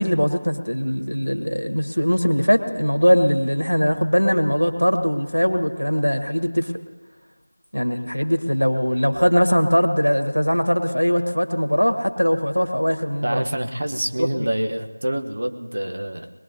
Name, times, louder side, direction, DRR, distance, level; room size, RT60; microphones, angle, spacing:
voice 1, 0.0-6.7 7.7-13.4 14.2-14.3, equal, 80° left, 5 dB, 1.6 m, -20 dB
voice 2, 13.2-16.3, right 1 dB, 50° right, 6 dB, 1.0 m, -26 dB
22.0 x 20.0 x 2.8 m, 1.3 s
figure-of-eight pair, 170°, 0 cm